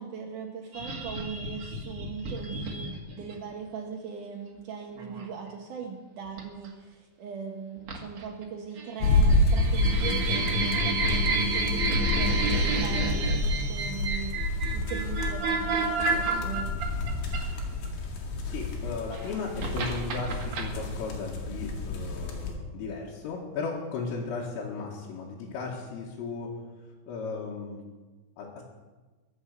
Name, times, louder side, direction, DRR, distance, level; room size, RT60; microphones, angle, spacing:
voice 1, 0.0-16.7, right 6 dB, 85° right, 1 dB, 1.8 m, -39 dB
sound 1, 0.7-3.4 5.0-5.2 6.4-6.7 7.9-8.4 8.8-17.9 18.9-20.6, right 3 dB, 50° right, 2.0 m, -30 dB
sound 2, 9.0-22.5, left 2 dB, 65° left, 4.1 m, -29 dB
voice 2, 18.5-26.5 27.1-27.8 28.4-28.6, left 4 dB, 85° left, -4 dB, 4.5 m, -36 dB
23.0 x 8.1 x 6.7 m, 1.3 s
omnidirectional pair, 5.8 m